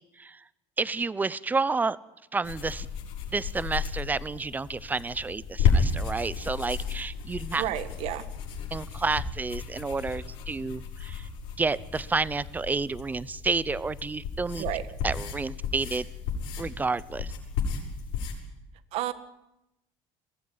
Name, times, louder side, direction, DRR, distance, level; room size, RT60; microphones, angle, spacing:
voice 1, 0.8-2.0 2.3-2.9 3.3-7.6 8.7-11.3 11.6-14.7 15.0-16.1 16.6-17.3, right 4 dB, 15° right, 19 dB, 0.7 m, -30 dB
sound 1, 2.4-18.4, left 5 dB, 85° left, 7.1 m, -33 dB
voice 2, 7.6-8.2 14.6-14.9 18.9-19.1, right 13 dB, 65° right, 12 dB, 1.6 m, -31 dB
22.0 x 15.0 x 10.0 m, 0.91 s
cardioid pair, 120°, 11 cm